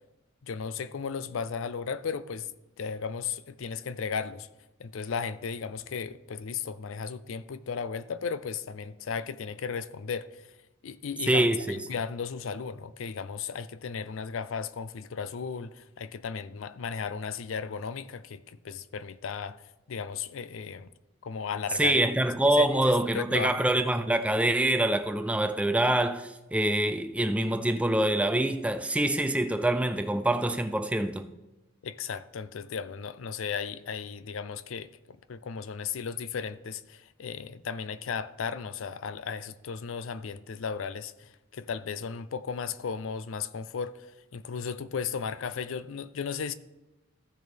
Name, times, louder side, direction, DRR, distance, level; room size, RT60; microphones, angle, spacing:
voice 1, 0.4-2.5 2.8-4.5 4.8-10.5 10.8-19.6 19.9-20.9 21.2-22.0 22.5-22.7 23.1-23.6 31.8-44.1 44.3-46.5, left 6 dB, 70° left, 0.4 m, -35 dB
voice 2, 11.3-11.8 21.8-31.3, right 1 dB, 5° right, 0.3 m, -25 dB
14.5 x 6.5 x 3.5 m
head